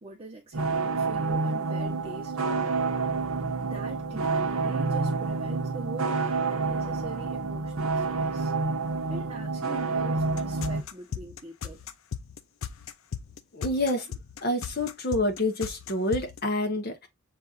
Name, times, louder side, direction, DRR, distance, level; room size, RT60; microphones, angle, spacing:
voice 1, 0.0-2.7 3.6-8.5 9.1-11.9, right 2 dB, 25° right, 0.9 m, -44 dB
sound 1, 0.5-10.8, right 4 dB, 70° right, 0.8 m, -28 dB
sound 2, 10.2-16.4, left 7 dB, 65° left, 0.4 m, -37 dB
voice 2, 13.5-14.1 14.4-17.1, left 1 dB, 45° left, 1.0 m, -28 dB
6.7 x 2.6 x 2.4 m
head